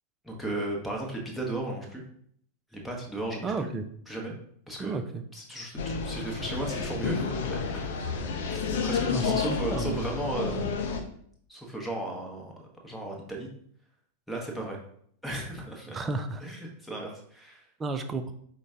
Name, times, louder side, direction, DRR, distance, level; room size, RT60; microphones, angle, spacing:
voice 1, 0.2-2.0 2.7-3.7 4.1-4.4 4.7-5.0 5.3-7.8 8.5-11.0 11.5-12.5 12.8-13.5 14.3-14.8 15.2-16.0 16.4-17.6, right 1 dB, ahead, 0 dB, 0.9 m, -35 dB
voice 2, 3.4-3.8 4.8-5.2 9.1-10.0 15.9-16.4 17.8-18.3, right 3 dB, 20° right, 8 dB, 0.4 m, -32 dB
sound 1, 5.8-11.0, left 5 dB, 55° left, 0.5 m, -30 dB
5.1 x 2.2 x 3.6 m, 0.65 s
figure-of-eight pair, 90°, 0 cm